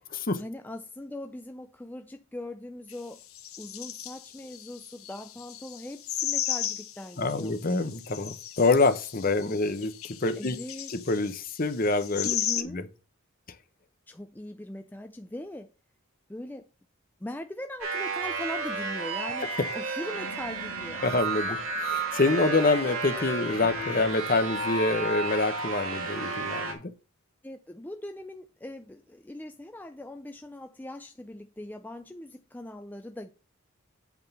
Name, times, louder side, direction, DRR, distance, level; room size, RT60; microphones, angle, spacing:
voice 1, 0.3-3.2 3.6-7.9 10.4-10.9 12.2-12.8 14.1-15.7 16.3-16.7 17.2-21.0 27.4-33.3, left 1 dB, 10° left, 0.4 m, -40 dB
sound 1, 2.9-3.0 3.2-12.6, left 11 dB, 85° left, 0.8 m, -35 dB
voice 2, 7.2-10.6 10.9-12.8 21.0-21.6 21.9-26.9, left 3 dB, 40° left, 0.8 m, -26 dB
sound 2, 17.8-26.7, right 3 dB, 75° right, 2.0 m, -32 dB
8.3 x 3.7 x 6.7 m
head